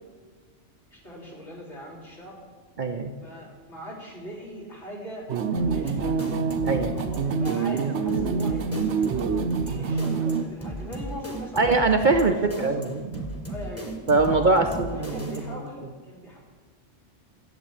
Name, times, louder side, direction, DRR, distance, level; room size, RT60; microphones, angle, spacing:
voice 1, 0.9-2.4 3.2-6.2 6.8-9.0 9.6-11.7 12.5-12.7 13.5-13.9 14.3-16.4, equal, 65° left, -4 dB, 3.8 m, -40 dB
voice 2, 2.8-3.1 6.6-7.0 11.6-13.3 14.1-15.3, right 3 dB, 45° right, 6 dB, 0.7 m, -22 dB
sound 1, 5.3-10.4, right 5 dB, 70° right, 1.1 m, -26 dB
sound 2, 5.6-15.7, right 1 dB, 10° left, 1.7 m, -36 dB
12.0 x 7.7 x 8.8 m, 1.5 s
omnidirectional pair, 1.3 m